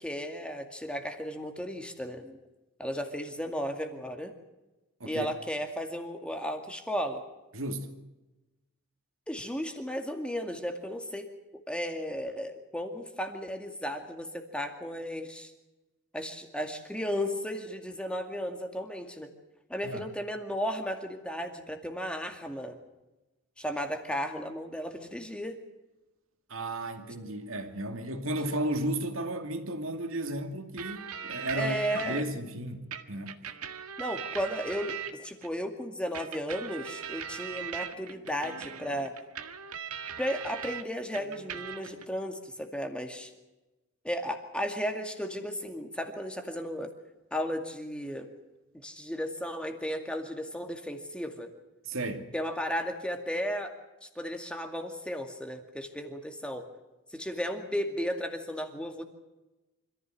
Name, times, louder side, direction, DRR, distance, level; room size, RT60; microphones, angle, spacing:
voice 1, 0.0-2.4 2.8-4.3 5.1-7.2 9.3-11.3 11.7-15.5 16.1-19.3 19.7-22.8 23.6-25.6 31.5-32.3 34.0-39.1 40.2-43.3 44.0-46.9 47.3-48.3 48.7-51.5 52.3-53.7 54.0-56.7 57.1-59.0, equal, 5° left, 2.2 m, -34 dB
voice 2, 7.5-7.9 19.8-20.1 26.5-33.4 51.9-52.3, right 1 dB, 65° right, 2.6 m, -34 dB
sound 1, 30.8-32.2 32.9-35.5 36.1-40.8 41.1-42.0, right 7 dB, 90° right, 1.7 m, -40 dB
26.0 x 15.0 x 7.8 m
head